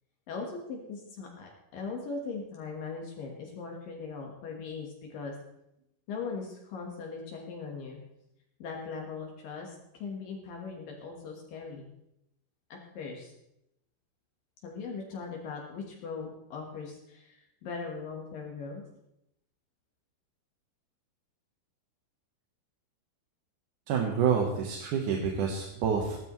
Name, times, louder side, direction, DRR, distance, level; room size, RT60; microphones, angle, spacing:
voice 1, 0.3-5.3 6.1-8.0 8.6-11.9 12.7-13.3 14.6-17.3 17.6-18.8, left 4 dB, 70° left, 0 dB, 3.1 m, -39 dB
voice 2, 23.9-26.3, right 6 dB, 65° right, 0 dB, 2.5 m, -28 dB
16.5 x 13.0 x 3.1 m, 0.82 s
omnidirectional pair, 4.3 m